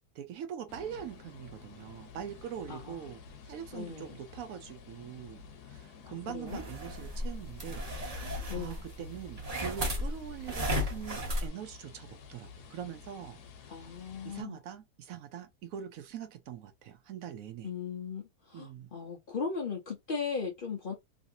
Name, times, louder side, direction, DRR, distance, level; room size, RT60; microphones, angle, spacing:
voice 1, 0.1-3.2 3.4-13.4 13.7-13.9 14.2-17.7 18.5-18.9, right 9 dB, 85° right, 0.7 m, -43 dB
sound 1, 0.7-14.4, left 6 dB, 65° left, 1.2 m, -51 dB
voice 2, 3.7-4.2 6.0-6.6 8.5-8.8 13.7-14.6 17.6-20.9, left 5 dB, 90° left, 0.4 m, -38 dB
sound 2, 6.5-11.5, equal, 35° right, 0.6 m, -35 dB
3.2 x 2.7 x 2.6 m
omnidirectional pair, 2.0 m